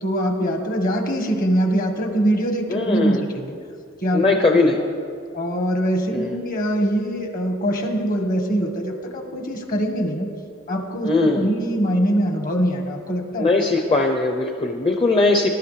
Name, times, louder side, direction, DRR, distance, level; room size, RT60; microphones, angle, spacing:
voice 1, 0.0-3.6 4.0-4.2 4.7-4.9 5.3-10.3 10.7-13.5, right 1 dB, 45° left, 4 dB, 1.5 m, -23 dB
voice 2, 2.7-3.2 4.1-4.8 6.1-6.4 11.0-11.5 13.4-15.5, left 3 dB, 25° left, 1 dB, 0.7 m, -19 dB
20.0 x 12.0 x 3.3 m, 2.3 s
head